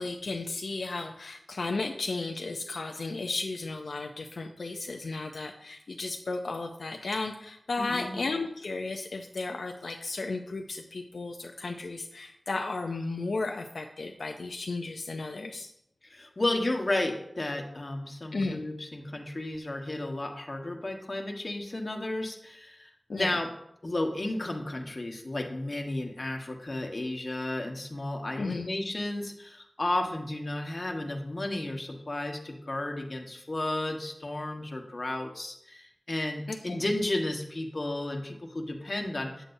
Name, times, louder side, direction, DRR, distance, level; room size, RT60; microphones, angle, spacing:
voice 1, 0.0-15.7 18.3-18.6 23.1-23.4 28.4-28.7 36.5-36.8, left 3 dB, 85° left, 3 dB, 0.5 m, -34 dB
voice 2, 7.8-8.1 16.1-23.5 23.8-39.4, left 1 dB, 45° left, 2 dB, 1.3 m, -33 dB
9.0 x 7.6 x 2.6 m, 0.75 s
wide cardioid pair, 50°, 0 cm